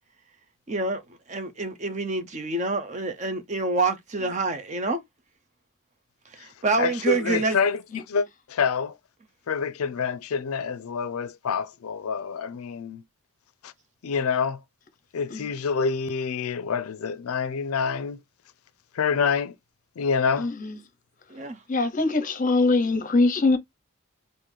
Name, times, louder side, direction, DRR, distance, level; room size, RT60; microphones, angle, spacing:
voice 1, 0.7-1.0 1.3-5.0 6.3-7.6 21.3-21.6, right 3 dB, 35° right, 0.5 m, -27 dB
voice 2, 6.8-9.0 9.5-13.0 13.6-13.7 14.0-14.6 15.1-18.2 18.9-19.5 20.0-20.5, left 6 dB, 80° left, 0.4 m, -27 dB
voice 3, 20.4-20.8 21.7-23.6, left 3 dB, 35° left, 0.7 m, -22 dB
3.8 x 2.6 x 3.1 m
head